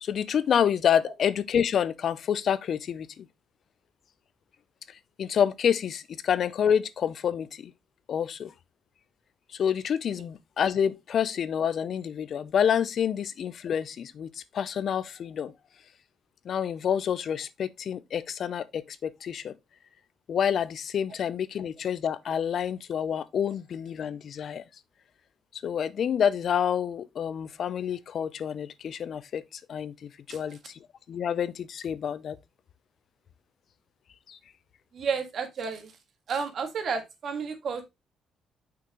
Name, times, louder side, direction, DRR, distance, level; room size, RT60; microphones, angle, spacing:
voice 1, 0.0-3.3 4.9-7.7 8.1-8.5 9.5-15.5 16.4-19.5 20.3-24.6 25.5-32.4 34.3-34.4, left 8 dB, 60° left, 0.6 m, -28 dB
voice 2, 34.9-35.9 36.3-37.8, right 5 dB, 60° right, 1.7 m, -31 dB
6.1 x 5.9 x 3.0 m
cardioid pair, 90°, 0 cm